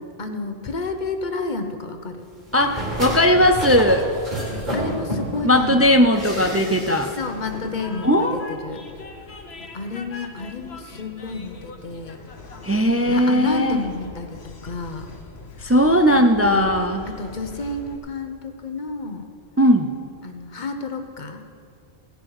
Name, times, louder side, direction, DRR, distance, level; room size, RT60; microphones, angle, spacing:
voice 1, 0.2-2.3 4.7-6.5 7.0-8.9 9.7-12.2 13.1-15.1 15.6-15.7 16.1-16.7 17.1-19.3 20.2-21.4, left 3 dB, 45° left, 6 dB, 1.1 m, -31 dB
voice 2, 2.5-4.1 5.4-7.1 8.0-8.4 12.6-13.8 15.6-17.1 19.6-19.9, equal, 20° right, 6 dB, 0.4 m, -18 dB
sound 1, 2.5-5.5 6.1-7.2 7.5-7.6, right 1 dB, 40° right, 4.3 m, -30 dB
Train, 4.1-18.0, left 3 dB, 70° left, 1.4 m, -40 dB
17.0 x 10.0 x 4.9 m, 2.4 s
omnidirectional pair, 1.1 m